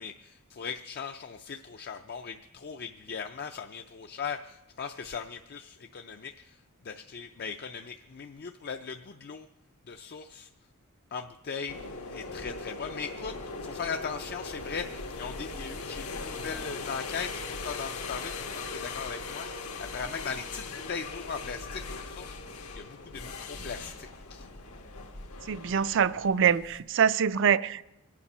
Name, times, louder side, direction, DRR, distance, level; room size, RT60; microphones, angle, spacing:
voice 1, 0.0-6.6 6.8-9.5 9.9-10.5 11.1-22.4 22.8-24.5, left 6 dB, 45° left, 0.5 m, -39 dB
sound 1, 11.7-26.8, left 3 dB, 85° left, 1.5 m, -40 dB
voice 2, 25.5-27.9, right 7 dB, 60° right, 0.5 m, -24 dB
24.0 x 8.5 x 5.5 m
head